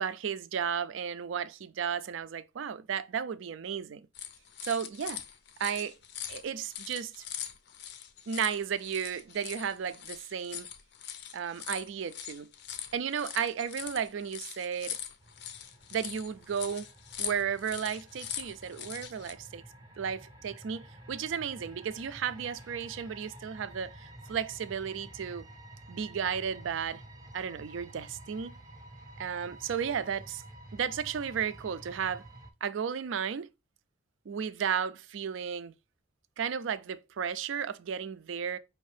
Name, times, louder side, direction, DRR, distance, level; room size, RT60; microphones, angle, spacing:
voice 1, 0.0-4.0 4.6-5.2 5.6-6.0 6.3-7.2 8.3-10.7 11.3-12.5 12.9-15.0 15.9-16.9 17.2-19.6 20.0-25.5 25.9-27.0 27.3-28.5 29.2-30.4 30.7-32.3 32.6-33.5 34.3-35.7 36.4-38.6, right 7 dB, 70° right, 0.4 m, -34 dB
sound 1, 4.1-19.3, left 10 dB, 55° left, 0.5 m, -42 dB
sound 2, 15.2-32.5, right 1 dB, 20° right, 0.6 m, -51 dB
5.0 x 2.7 x 3.3 m
head